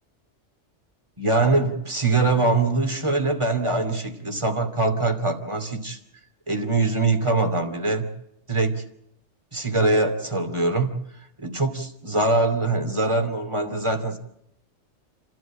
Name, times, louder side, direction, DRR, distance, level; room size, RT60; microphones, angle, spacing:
voice 1, 1.2-6.0 6.5-8.1 8.5-8.8 9.5-11.0 11.4-14.2, right 2 dB, 25° right, 7 dB, 2.7 m, -23 dB
30.0 x 12.5 x 8.7 m, 0.80 s
omnidirectional pair, 1.2 m